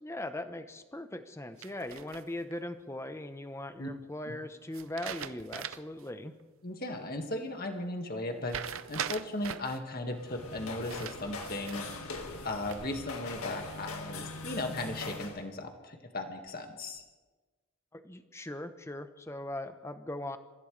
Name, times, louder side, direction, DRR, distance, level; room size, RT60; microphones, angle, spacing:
voice 1, 0.0-6.3 17.9-20.4, left 1 dB, 10° left, 9 dB, 0.9 m, -40 dB
sound 1, 1.6-2.5 4.7-6.0 6.4-6.5 8.5-9.8 10.8-12.0 12.4-13.0, right 8 dB, 65° right, 0.6 m, -40 dB
voice 2, 6.6-11.8 12.4-17.0, left 1 dB, 40° left, 4 dB, 1.9 m, -37 dB
sound 2, 10.1-15.4, left 3 dB, 75° left, 1.9 m, -41 dB
28.0 x 15.5 x 3.3 m, 1.2 s
head